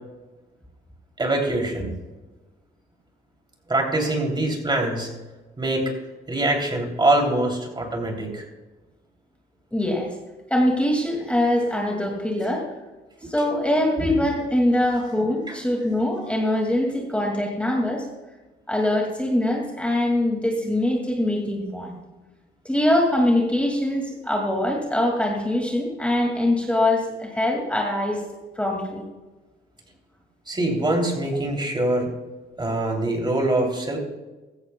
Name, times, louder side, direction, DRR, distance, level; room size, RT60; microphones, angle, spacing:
voice 1, 1.2-1.9 3.7-5.1 5.6-5.9 6.3-8.4 14.0-14.2 15.5-15.6 30.5-32.1 32.6-34.0, right 1 dB, 20° right, 1 dB, 3.1 m, -23 dB
voice 2, 9.7-10.1 10.5-12.6 13.3-18.0 18.7-21.9 22.6-28.2 28.6-29.0, left 1 dB, 5° left, -1 dB, 2.3 m, -23 dB
15.5 x 14.0 x 2.3 m, 1.2 s
cardioid pair, 90°, 20 cm